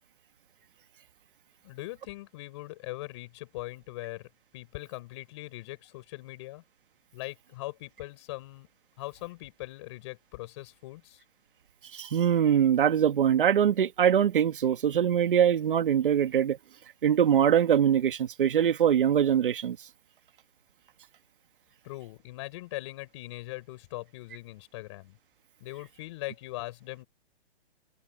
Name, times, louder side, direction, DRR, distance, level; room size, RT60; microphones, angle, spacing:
voice 1, 1.6-6.6 7.1-8.7 9.0-11.2 21.8-25.2 25.6-27.1, left 19 dB, 25° left, 6.3 m, -41 dB
voice 2, 11.9-16.6 17.0-19.8, right 9 dB, 55° right, 1.9 m, -23 dB
hypercardioid pair, 175°, 32 cm